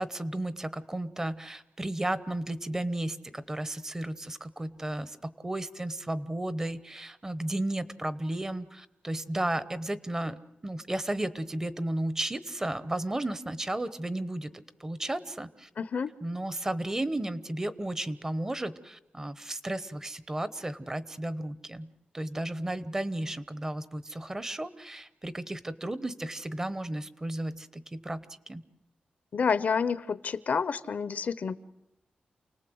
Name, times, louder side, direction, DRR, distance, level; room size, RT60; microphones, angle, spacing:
voice 1, 0.0-14.5 14.8-15.7 16.2-21.9 22.1-28.6, right 1 dB, 20° right, 14 dB, 1.0 m, -34 dB
voice 2, 15.8-16.1 29.3-31.6, left 6 dB, 60° left, 15 dB, 0.8 m, -29 dB
29.0 x 19.0 x 8.0 m, 0.90 s
wide cardioid pair, 120°, 3 cm